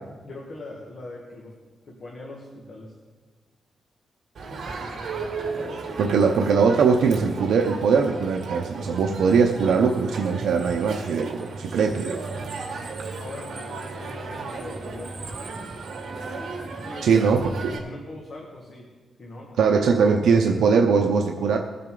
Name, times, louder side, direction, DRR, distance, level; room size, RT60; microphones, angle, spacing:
voice 1, 0.2-1.5 1.8-2.9 13.1-15.1 16.8-17.2 17.6-18.9 19.2-19.6, left 2 dB, 45° left, -2 dB, 1.8 m, -41 dB
Crowd, 4.3-17.8, right 3 dB, 65° right, 2.0 m, -35 dB
voice 2, 6.0-12.2 17.0-17.7 19.6-21.6, right 5 dB, 90° right, 3 dB, 0.7 m, -21 dB
21.0 x 7.7 x 3.9 m, 1.4 s
wide cardioid pair, 150°, 0 cm